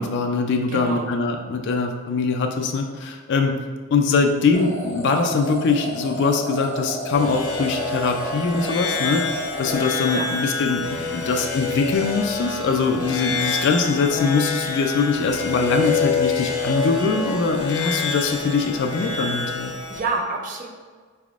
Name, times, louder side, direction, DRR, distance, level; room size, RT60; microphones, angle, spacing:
voice 1, 0.0-3.6 3.9-19.7, left 4 dB, 55° left, 3 dB, 0.3 m, -22 dB
voice 2, 0.7-1.1 10.1-10.3 19.9-20.7, right 3 dB, 35° right, 1 dB, 0.4 m, -27 dB
sound 1, 4.5-10.7, right 1 dB, 15° left, 0.7 m, -33 dB
sound 2, 7.1-20.0, left 4 dB, 85° left, 0.6 m, -27 dB
4.1 x 3.4 x 2.4 m, 1.5 s
head